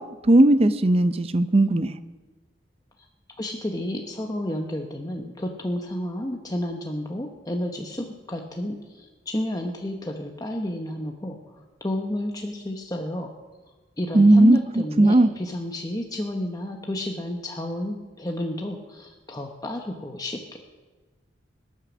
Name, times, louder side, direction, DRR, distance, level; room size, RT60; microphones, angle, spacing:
voice 1, 0.0-2.0 14.1-14.6 15.0-15.3, right 1 dB, 30° right, 12 dB, 0.6 m, -17 dB
voice 2, 3.4-13.3 14.0-20.6, left 1 dB, 20° left, 2 dB, 0.9 m, -31 dB
21.0 x 8.4 x 6.2 m, 1.4 s
head